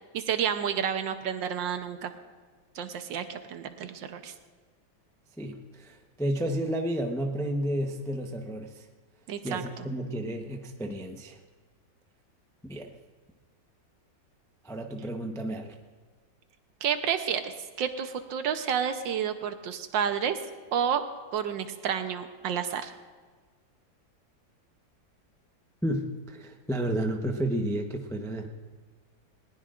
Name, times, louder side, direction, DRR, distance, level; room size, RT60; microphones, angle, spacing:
voice 1, 0.1-2.1 2.7-4.3 9.3-9.8 16.8-20.4 20.7-21.0 21.3-22.9, right 8 dB, 75° right, 8 dB, 1.6 m, -30 dB
voice 2, 5.4-8.8 9.4-11.4 12.6-12.9 14.6-15.7 25.8-28.5, right 1 dB, 5° left, 3 dB, 0.3 m, -31 dB
20.5 x 19.0 x 2.5 m, 1.5 s
omnidirectional pair, 2.1 m